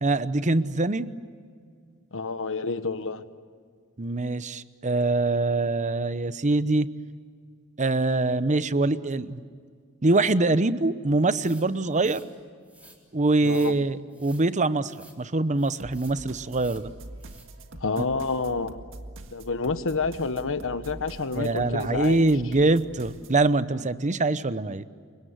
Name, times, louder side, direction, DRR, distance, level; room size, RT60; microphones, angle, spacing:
voice 1, 0.0-1.1 4.0-6.9 7.8-9.4 10.0-12.2 13.1-16.9 21.4-24.9, right 2 dB, 35° right, 14 dB, 0.9 m, -24 dB
voice 2, 2.1-3.2 13.4-13.7 17.8-18.8 19.3-22.3, left 4 dB, 60° left, 11 dB, 1.3 m, -29 dB
sound 1, 11.3-12.3 12.6-13.0 13.4-13.8 14.1-14.4 14.8-15.2 15.6-16.2 16.5-16.9 17.2-17.5, right 1 dB, 5° right, 4.1 m, -53 dB
sound 2, 15.8-23.4, right 1 dB, 65° right, 1.8 m, -45 dB
29.5 x 24.5 x 8.1 m, 2.1 s
head